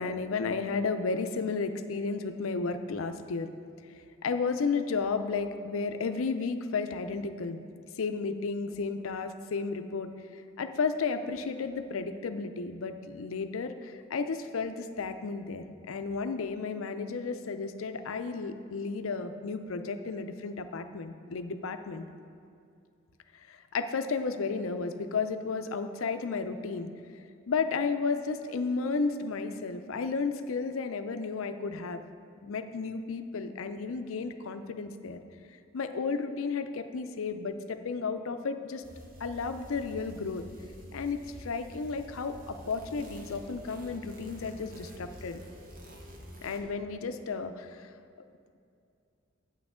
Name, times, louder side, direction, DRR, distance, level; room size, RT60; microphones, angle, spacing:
voice 1, 0.0-3.5 4.2-7.6 8.0-22.1 23.3-26.9 27.5-32.0 32.4-35.2 35.7-38.8 39.2-40.5 40.9-45.4 46.4-47.9, left 4 dB, 85° left, 9 dB, 0.5 m, -33 dB
sound 1, 38.8-46.6, right 1 dB, 45° right, 0.9 m, -48 dB
8.9 x 8.4 x 3.7 m, 2.4 s
head